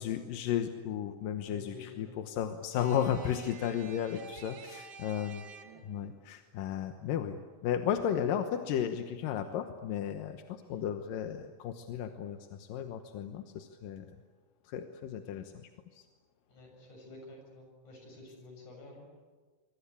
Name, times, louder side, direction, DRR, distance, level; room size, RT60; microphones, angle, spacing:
voice 1, 0.0-5.4 5.8-14.2 14.6-16.0, left 9 dB, 90° left, 7 dB, 2.8 m, -34 dB
voice 2, 1.5-2.2 10.7-10.8 16.5-19.1, left 3 dB, 60° left, 2 dB, 8.3 m, -50 dB
sound 1, 2.8-6.0, right 6 dB, 50° right, 2.6 m, -49 dB
27.0 x 23.0 x 8.5 m, 1.4 s
omnidirectional pair, 3.8 m